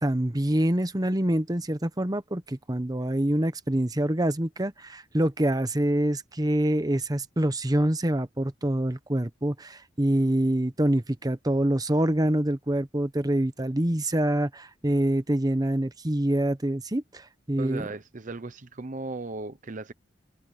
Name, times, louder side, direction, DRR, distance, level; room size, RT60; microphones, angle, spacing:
voice 1, 0.0-17.9, right 1 dB, 20° right, 1.1 m, -26 dB
voice 2, 17.6-19.9, right 3 dB, 45° right, 0.8 m, -36 dB
head